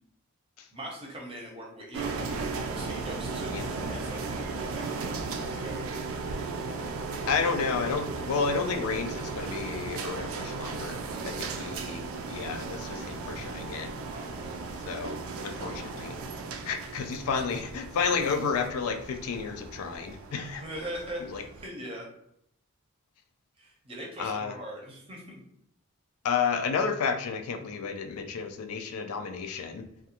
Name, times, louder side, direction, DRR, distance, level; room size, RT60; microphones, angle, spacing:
voice 1, 0.7-6.0 11.1-11.5 14.1-14.6 15.5-15.8 20.6-22.1 23.6-25.4, equal, 25° right, -2 dB, 0.6 m, -42 dB
sound 1, 1.9-21.7, right 4 dB, 70° right, 0.3 m, -36 dB
voice 2, 3.5-3.8 7.3-11.0 11.2-12.0 12.3-13.9 14.9-15.2 15.4-16.2 16.6-20.6 21.3-21.4 24.2-24.6 26.2-29.8, left 5 dB, 75° left, 7 dB, 0.3 m, -31 dB
2.4 x 2.2 x 2.8 m, 0.74 s
head